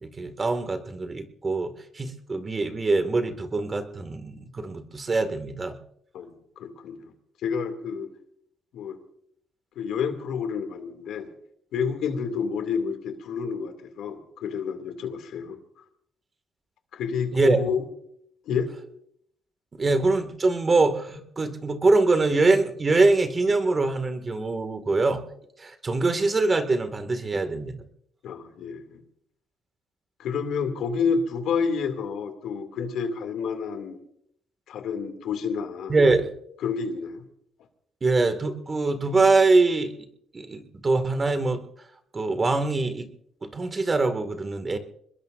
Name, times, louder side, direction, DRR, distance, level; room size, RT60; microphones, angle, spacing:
voice 1, 0.0-5.8 17.3-17.6 19.7-25.2 25.6-27.8 35.9-36.3 38.0-40.1 40.3-41.6 42.1-43.1 43.4-44.8, right 3 dB, 30° right, 8 dB, 2.0 m, -23 dB
voice 2, 6.1-7.1 7.4-8.1 8.7-9.0 9.8-11.3 11.7-15.6 16.9-17.8 18.5-18.7 28.2-29.0 30.2-34.0 34.7-36.0 36.6-37.2, left 6 dB, 80° left, 6 dB, 2.5 m, -29 dB
26.0 x 21.0 x 2.6 m, 0.71 s
cardioid pair, 90°, 0 cm